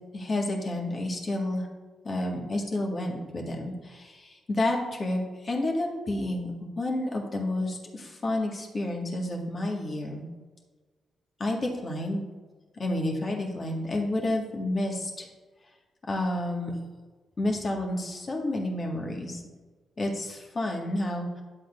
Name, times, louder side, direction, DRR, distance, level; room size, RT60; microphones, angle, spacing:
voice 1, 0.1-1.7 2.0-6.5 6.8-10.2 11.4-12.2 12.8-15.3 16.1-16.7 17.4-19.4 20.0-21.4, left 1 dB, 45° left, 0 dB, 1.9 m, -30 dB
10.0 x 7.6 x 2.7 m, 1.3 s
hypercardioid pair, 40°, 0 cm